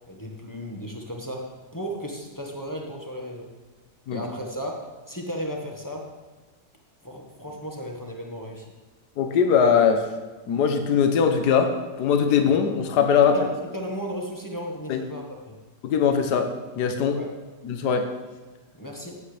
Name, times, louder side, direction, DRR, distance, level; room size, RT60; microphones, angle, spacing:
voice 1, 0.1-3.5 4.1-6.1 7.0-8.7 13.3-15.6 17.1-17.4 18.8-19.2, equal, 10° left, -1 dB, 1.3 m, -35 dB
voice 2, 9.2-10.1 10.5-13.4 14.9-15.0 15.8-17.2 17.6-18.1, left 6 dB, 75° left, 6 dB, 1.5 m, -21 dB
15.5 x 8.9 x 3.3 m, 1.2 s
omnidirectional pair, 1.8 m